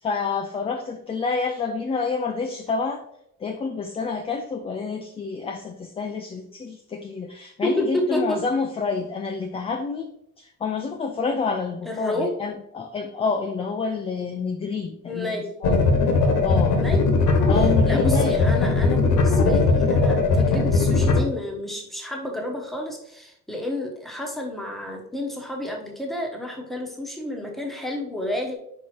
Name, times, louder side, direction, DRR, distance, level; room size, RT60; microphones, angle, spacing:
voice 1, 0.0-3.0 3.4-10.1 10.4-15.8 16.4-16.8 17.5-18.4, left 4 dB, 20° left, 4 dB, 0.3 m, -28 dB
voice 2, 7.6-8.4 11.8-12.3 15.0-15.5 16.7-17.1 17.9-28.6, left 1 dB, ahead, 0 dB, 1.0 m, -30 dB
sound 1, 15.6-21.2, left 3 dB, 65° left, 1.3 m, -19 dB
5.4 x 4.7 x 4.3 m, 0.74 s
cardioid pair, 180°, 33 cm